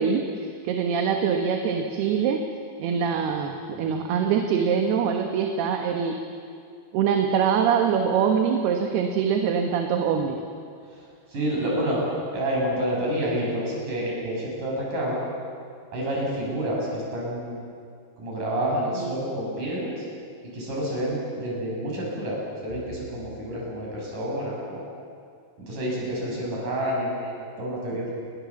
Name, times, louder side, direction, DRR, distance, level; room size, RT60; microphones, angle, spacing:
voice 1, 0.0-2.4 2.8-6.2 6.9-10.4 19.0-19.1, right 7 dB, 75° right, 3 dB, 3.3 m, -24 dB
voice 2, 11.3-12.0 12.3-15.2 15.9-17.6 18.2-20.0 20.5-24.9 25.6-28.1, right 1 dB, 50° right, -3 dB, 8.3 m, -28 dB
29.5 x 21.0 x 7.3 m, 2.3 s
omnidirectional pair, 4.8 m